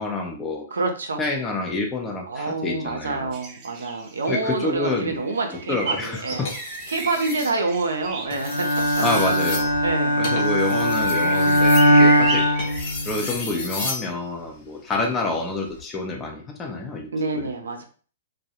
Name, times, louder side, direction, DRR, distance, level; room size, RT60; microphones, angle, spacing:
voice 1, 0.0-0.7 1.2-3.4 4.3-5.3 5.5-6.5 9.0-9.8 10.2-12.5 13.1-17.5, left 3 dB, 15° left, 1 dB, 0.5 m, -28 dB
voice 2, 0.7-1.2 2.3-6.5 6.9-8.7 9.2-9.3 9.8-10.2 17.1-17.8, right 3 dB, 85° right, 4 dB, 0.5 m, -27 dB
sound 1, 3.3-4.4 4.7-12.8, right 4 dB, 35° right, 0.5 m, -35 dB
sound 2, 6.3-7.5 8.2-14.1 15.5-15.8, left 3 dB, 55° left, 0.7 m, -34 dB
Bowed string instrument, 8.4-13.4, equal, 85° left, 0.4 m, -20 dB
2.2 x 2.0 x 2.8 m, 0.40 s
hypercardioid pair, 130°, 0 cm